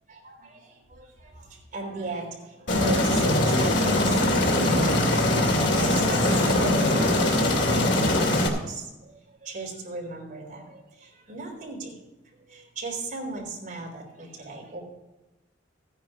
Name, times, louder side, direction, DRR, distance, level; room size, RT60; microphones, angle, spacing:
voice 1, 0.1-5.4 5.8-11.9 12.5-14.8, right 3 dB, 45° right, -2 dB, 4.2 m, -37 dB
Aircraft, 2.7-8.5, left 1 dB, 60° left, 2.5 m, -22 dB
15.0 x 10.0 x 3.8 m, 1.0 s
head